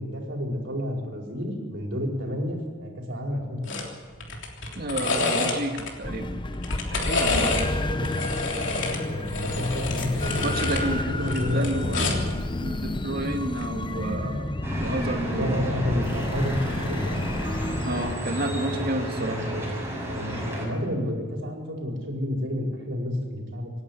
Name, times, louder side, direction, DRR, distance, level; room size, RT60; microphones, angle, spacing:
voice 1, 0.0-3.9 7.7-8.3 8.5-10.7 11.1-12.2 15.3-17.5 19.1-19.7 20.0-23.7, left 1 dB, 75° right, 0 dB, 4.7 m, -31 dB
sound 1, 3.7-3.9 4.2-5.9 6.5-7.7 8.0-10.8 11.2-12.3 13.5-13.7, left 3 dB, 75° left, 3.4 m, -28 dB
voice 2, 4.8-6.4 6.9-7.7 10.4-12.3 12.6-14.5 14.8-15.7 17.8-19.4, right 1 dB, 55° right, 5 dB, 2.1 m, -31 dB
sound 2, 6.0-18.1, left 1 dB, 25° left, 0.7 m, -30 dB
sound 3, 14.6-20.7, equal, 15° right, 6.1 m, -31 dB
26.5 x 11.0 x 9.5 m, 1.5 s
head